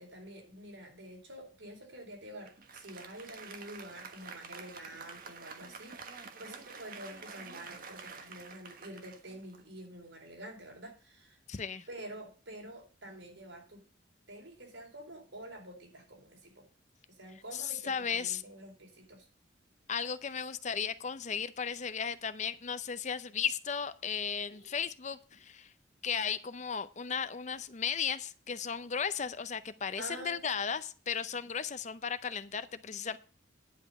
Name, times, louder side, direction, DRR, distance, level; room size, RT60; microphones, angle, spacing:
voice 1, 0.0-11.4 11.9-13.8 14.3-16.7 17.1-19.3 24.4-24.8 30.0-30.4, right 1 dB, 80° right, 0 dB, 4.5 m, -48 dB
Applause, 2.5-10.1, right 5 dB, 50° right, 1.3 m, -48 dB
voice 2, 11.5-11.9 17.5-18.4 19.9-25.7 26.0-33.2, left 7 dB, 40° left, 14 dB, 0.6 m, -35 dB
10.5 x 5.2 x 8.2 m, 0.37 s
head